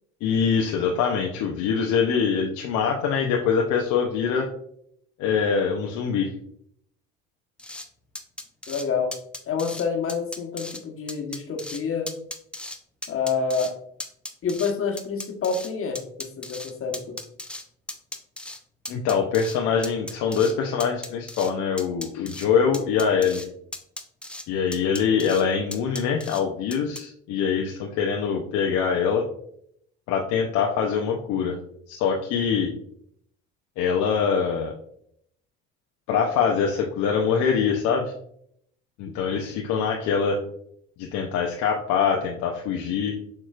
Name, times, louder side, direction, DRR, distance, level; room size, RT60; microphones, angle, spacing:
voice 1, 0.2-4.5 5.2-6.3 18.9-23.4 24.5-29.2 30.1-31.6 31.9-32.7 33.8-34.7 36.1-38.1 39.0-40.4 41.0-43.1, left 6 dB, 60° left, 1 dB, 0.7 m, -24 dB
sound 1, 7.6-7.9 8.2-8.9 9.1-9.8 10.1-10.8 11.1-11.8 12.1-12.8 13.0-13.7 14.0-15.7 16.0-17.6 17.9-18.6 18.9-19.6 19.8-20.5 20.8-21.5 21.8-22.5 22.7-23.5 23.7-24.4 24.7-25.4 25.7-26.4 26.7-27.0, left 1 dB, 5° left, 0.5 m, -36 dB
voice 2, 8.7-9.1 9.5-12.2 13.1-13.8 14.4-17.2 39.1-39.4, left 5 dB, 40° left, 2 dB, 1.2 m, -28 dB
6.5 x 3.0 x 2.4 m, 0.69 s
hypercardioid pair, 70°, 32 cm